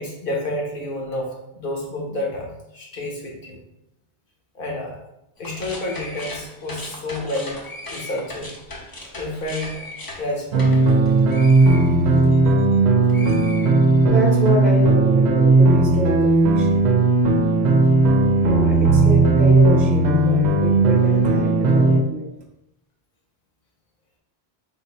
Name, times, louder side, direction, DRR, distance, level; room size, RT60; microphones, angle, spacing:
voice 1, 0.0-3.6 4.5-5.0 5.4-7.6 7.9-8.5 8.8-9.8 10.1-10.9 13.1-13.3 17.9-18.1, left 1 dB, 55° left, 0 dB, 1.2 m, -30 dB
sound 1, 5.4-12.8 13.1-14.3, left 2 dB, 25° left, 0.6 m, -38 dB
sound 2, 10.5-22.0, right 3 dB, 90° right, 0.9 m, -16 dB
voice 2, 14.1-16.8 18.4-22.3, right 1 dB, 50° right, -1 dB, 0.9 m, -27 dB
4.0 x 2.6 x 4.0 m, 0.84 s
omnidirectional pair, 1.1 m